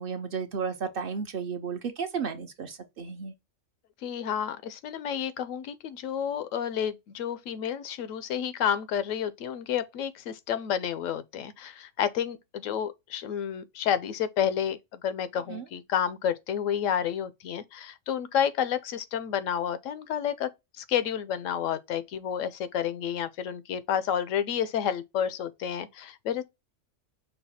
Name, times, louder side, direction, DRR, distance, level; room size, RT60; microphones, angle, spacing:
voice 1, 0.0-3.3 15.5-15.6, right 6 dB, 55° right, 0.7 m, -33 dB
voice 2, 4.0-20.5 20.8-26.4, left 9 dB, 90° left, 1.0 m, -30 dB
5.5 x 2.3 x 4.1 m
omnidirectional pair, 1.3 m